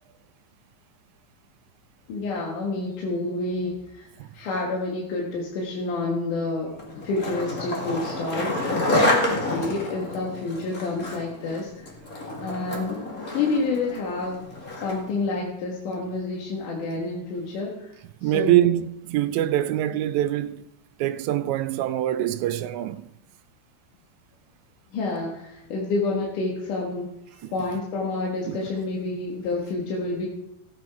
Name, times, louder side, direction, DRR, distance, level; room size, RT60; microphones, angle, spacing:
voice 1, 2.1-6.8 7.0-11.9 12.4-13.0 13.3-14.4 14.8-18.7 24.9-27.1 27.5-30.3, left 3 dB, 85° left, 3.1 m, -29 dB
Skateboard, 6.8-15.1, left 1 dB, 30° left, 2.2 m, -28 dB
voice 2, 18.2-20.6 21.0-23.1 27.4-27.5 28.5-28.6, right 13 dB, 80° right, 1.9 m, -24 dB
16.0 x 8.8 x 4.6 m
omnidirectional pair, 3.6 m